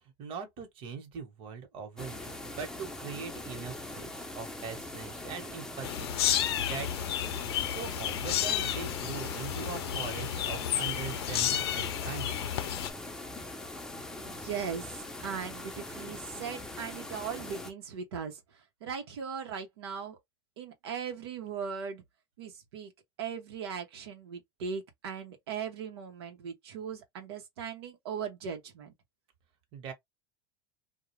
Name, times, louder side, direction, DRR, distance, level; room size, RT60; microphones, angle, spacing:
voice 1, 0.2-6.9 7.7-12.6 29.7-29.9, right 6 dB, 45° right, 1.1 m, -41 dB
sound 1, 2.0-17.7, left 2 dB, 5° left, 0.6 m, -42 dB
sound 2, 5.8-12.9, left 10 dB, 85° left, 0.5 m, -32 dB
voice 2, 14.2-20.2 20.6-22.0 22.4-22.9 23.2-28.9, right 7 dB, 85° right, 0.9 m, -39 dB
2.4 x 2.3 x 3.1 m
supercardioid pair, 130°, 13 cm